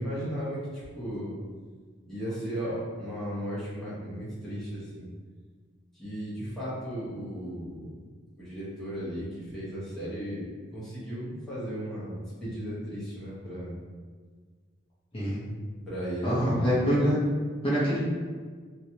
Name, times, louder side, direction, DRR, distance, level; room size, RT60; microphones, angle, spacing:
voice 1, 0.0-1.3 2.1-5.1 5.9-7.9 8.4-13.7 15.9-16.7, equal, 5° left, -11 dB, 1.1 m, -35 dB
voice 2, 16.2-17.2 17.6-18.0, equal, 30° left, -10 dB, 0.9 m, -25 dB
3.0 x 2.9 x 2.8 m, 1.5 s
head